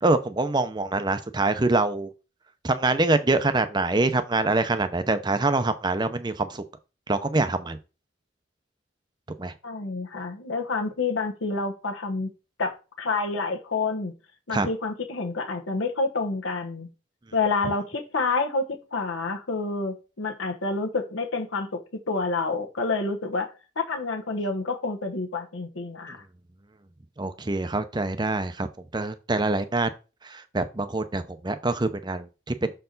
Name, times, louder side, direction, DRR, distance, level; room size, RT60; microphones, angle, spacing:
voice 1, 0.0-2.1 2.6-6.6 7.1-7.8 9.4-9.5 14.5-14.7 27.2-28.7 28.9-29.9 30.2-32.7, right 2 dB, 20° right, 0.6 m, -25 dB
voice 2, 9.6-12.3 12.6-14.1 14.5-16.9 17.3-26.2, left 3 dB, 80° left, 1.1 m, -28 dB
6.6 x 4.4 x 3.9 m
head